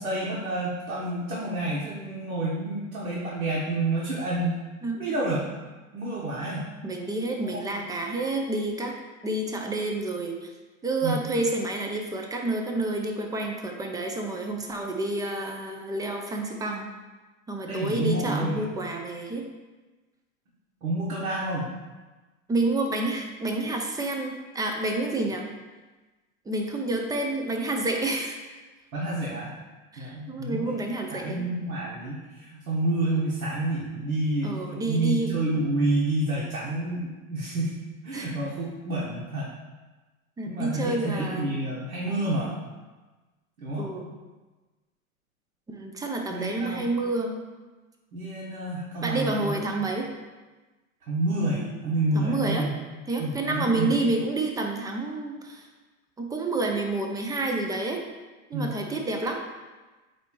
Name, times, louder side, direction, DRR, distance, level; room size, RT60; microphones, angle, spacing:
voice 1, 0.0-4.6 5.0-5.4 5.9-6.7 7.4-7.6 11.0-11.2 17.6-18.6 20.8-21.7 28.9-29.6 30.0-37.8 38.0-39.5 40.5-42.6 43.6-43.9 46.3-46.9 48.1-49.6 51.1-52.7 53.2-54.0 58.5-58.7, right 2 dB, 80° right, -6 dB, 1.7 m, -29 dB
voice 2, 6.8-9.0 9.2-10.5 10.8-16.9 17.5-19.5 22.5-25.5 26.5-28.4 29.9-31.4 34.4-35.4 38.1-38.3 40.4-41.6 43.8-44.1 45.7-47.4 49.0-50.1 52.1-52.7 53.1-55.6 56.2-58.0 58.5-59.4, right 2 dB, 10° right, 2 dB, 0.5 m, -29 dB
8.3 x 2.9 x 4.6 m, 1.2 s
hypercardioid pair, 115°, 42 cm